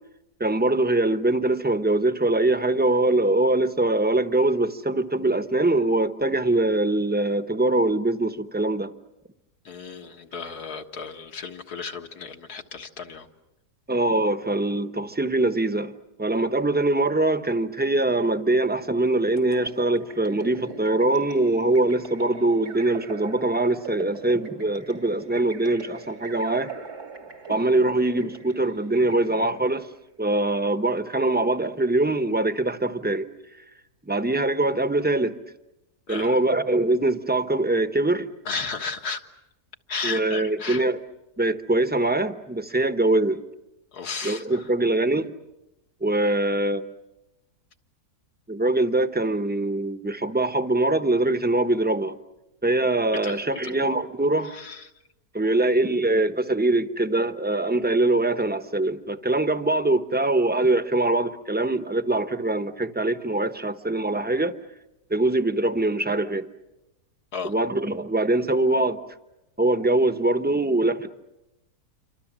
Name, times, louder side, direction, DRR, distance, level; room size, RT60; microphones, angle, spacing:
voice 1, 0.4-8.9 13.9-15.9 16.2-26.7 27.5-29.9 30.2-33.3 34.0-35.4 36.1-38.3 40.0-41.0 41.4-43.4 44.2-45.3 46.0-46.8 48.5-52.2 52.6-54.5 55.3-64.5 65.1-66.5 67.4-69.0 69.6-71.1, right 2 dB, 10° right, 0.7 m, -23 dB
voice 2, 9.6-13.3 36.1-36.4 38.5-39.2 39.9-40.8 42.8-42.9 43.9-44.7 53.2-53.4 54.4-54.9 67.3-67.5, left 5 dB, 80° left, 2.2 m, -34 dB
sound 1, 19.4-29.8, right 4 dB, 85° right, 3.6 m, -42 dB
28.0 x 25.5 x 7.4 m
omnidirectional pair, 1.7 m